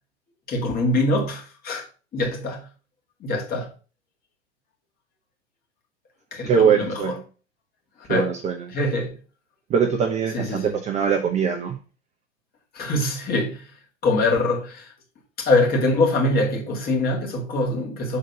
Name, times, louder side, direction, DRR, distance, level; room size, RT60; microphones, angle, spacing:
voice 1, 0.5-1.8 2.1-2.6 3.2-3.7 6.3-7.2 8.1-8.3 8.7-9.1 10.3-10.8 12.7-13.7 14.0-14.9 15.4-18.2, left 2 dB, 25° left, 2.2 m, -23 dB
voice 2, 6.5-7.2 8.1-8.5 9.7-11.8, right 7 dB, 20° right, 0.7 m, -22 dB
6.6 x 3.9 x 5.2 m
figure-of-eight pair, 95°, 34 cm